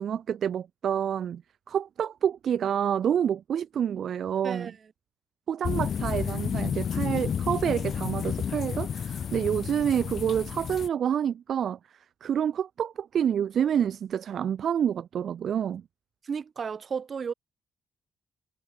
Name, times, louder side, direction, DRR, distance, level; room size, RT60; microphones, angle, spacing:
voice 1, 0.0-1.4 1.7-4.7 5.5-11.8 12.2-15.8, right 9 dB, 60° right, 1.0 m, -28 dB
sound 1, 5.6-10.9, left 7 dB, 55° left, 2.1 m, -31 dB
voice 2, 16.2-17.3, right 6 dB, 45° right, 3.7 m, -33 dB
cardioid pair, 90°, 0 cm